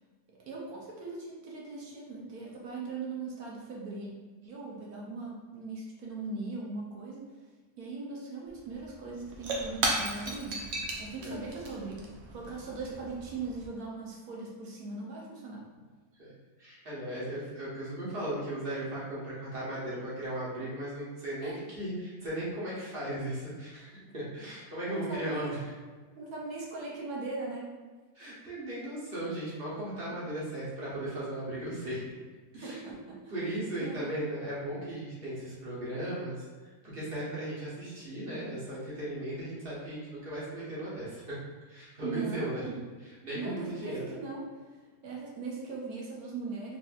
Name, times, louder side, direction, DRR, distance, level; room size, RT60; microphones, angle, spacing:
voice 1, 0.5-4.1 4.4-7.3 7.8-10.7 11.0-15.7 21.4-21.6 24.9-25.5 26.2-27.7 32.6-33.3 33.8-34.1 42.0-42.8 43.3-44.6 45.0-46.8, right 3 dB, 70° right, -3 dB, 1.1 m, -39 dB
Shatter / Crushing, 8.5-8.6 8.8-13.7, right 2 dB, 85° right, 0.5 m, -36 dB
voice 2, 16.6-25.6 28.1-32.1 32.5-32.8 33.3-41.4 41.6-42.7 43.2-44.0, right 1 dB, 40° right, -8 dB, 1.0 m, -37 dB
4.1 x 2.6 x 2.4 m, 1.4 s
omnidirectional pair, 1.8 m